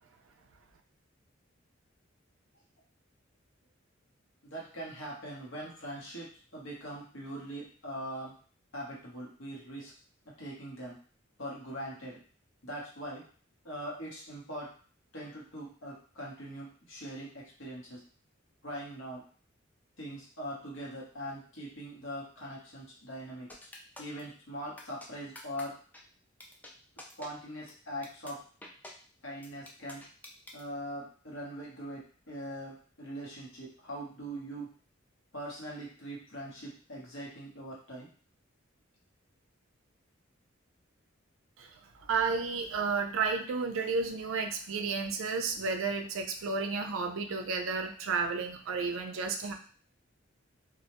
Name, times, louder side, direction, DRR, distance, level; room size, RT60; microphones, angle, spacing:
voice 1, 4.4-8.3 8.7-9.9 10.4-10.9 11.4-12.2 12.6-13.2 13.6-14.7 15.1-18.0 18.6-19.2 20.0-23.5 24.0-25.7 27.2-28.4 29.2-30.0 30.5-34.7 35.3-38.1, equal, 75° left, -4 dB, 1.0 m, -41 dB
sound 1, 23.5-24.2 24.8-25.1 25.3-25.6 25.9-26.0 26.4-26.7 27.0-27.3 27.7-27.8 28.0-28.3 28.6-28.9 29.4-30.6, left 1 dB, 10° left, 0.3 m, -47 dB
voice 2, 42.0-49.5, right 4 dB, 85° right, 5 dB, 0.4 m, -32 dB
2.3 x 2.1 x 2.9 m, 0.43 s
head